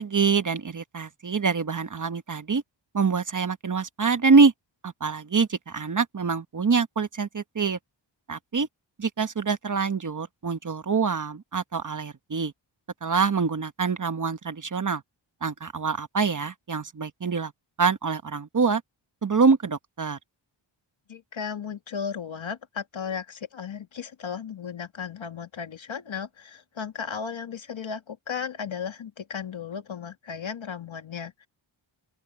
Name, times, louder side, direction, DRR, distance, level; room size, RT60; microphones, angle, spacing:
voice 1, 0.0-2.6 2.9-4.5 4.8-7.8 8.3-8.7 9.0-12.5 13.0-15.0 15.4-17.5 17.8-18.8 19.2-20.2, right 5 dB, 40° right, 1.1 m, -25 dB
voice 2, 21.1-31.5, left 7 dB, 75° left, 2.2 m, -35 dB
open air
wide cardioid pair, 95°, 47 cm